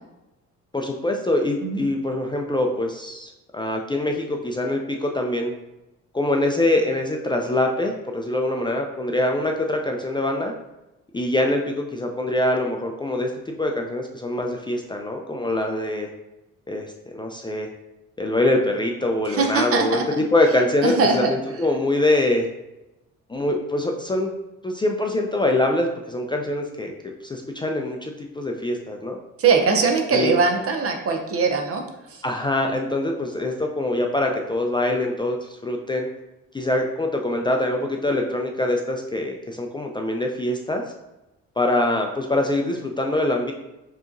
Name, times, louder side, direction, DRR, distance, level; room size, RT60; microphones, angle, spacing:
voice 1, 0.7-5.5 6.1-10.5 11.1-16.1 16.7-17.7 18.2-22.5 23.3-24.3 24.6-26.9 27.2-29.2 30.1-30.3 32.2-36.1 36.5-40.8 41.6-43.5, left 1 dB, 15° left, 2 dB, 0.4 m, -24 dB
voice 2, 19.3-20.0 20.8-21.3 29.4-31.8 32.1-32.2, right 4 dB, 50° right, 3 dB, 0.7 m, -21 dB
4.7 x 2.9 x 2.5 m, 0.96 s
cardioid pair, 90°, 30 cm